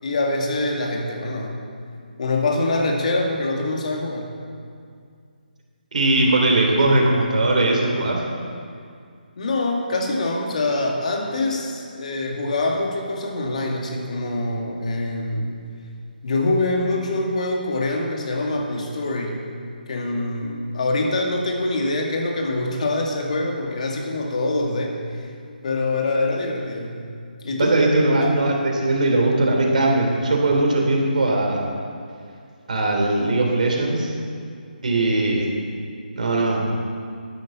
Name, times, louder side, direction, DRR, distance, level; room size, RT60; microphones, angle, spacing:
voice 1, 0.0-1.7 2.2-4.4 9.4-15.6 16.2-19.4 19.9-25.0 25.6-27.1 27.4-27.8 28.2-28.5, left 2 dB, 45° left, 0 dB, 2.3 m, -24 dB
voice 2, 5.9-8.2 27.6-31.6 32.7-34.1 34.8-35.5 36.2-36.6, right 2 dB, 50° right, 0 dB, 3.5 m, -19 dB
13.0 x 11.0 x 7.3 m, 2.2 s
figure-of-eight pair, 145°, 5 cm